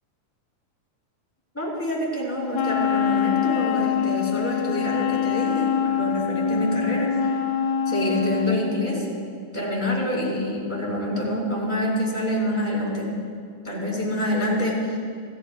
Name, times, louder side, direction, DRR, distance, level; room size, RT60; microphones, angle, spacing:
voice 1, 1.5-7.3 7.9-9.1 9.5-13.1 13.6-15.0, left 1 dB, 5° left, -5 dB, 3.9 m, -26 dB
Wind instrument woodwind instrument, 2.5-8.7, left 8 dB, 80° left, 1.9 m, -24 dB
27.0 x 14.5 x 2.2 m, 2.2 s
omnidirectional pair, 3.3 m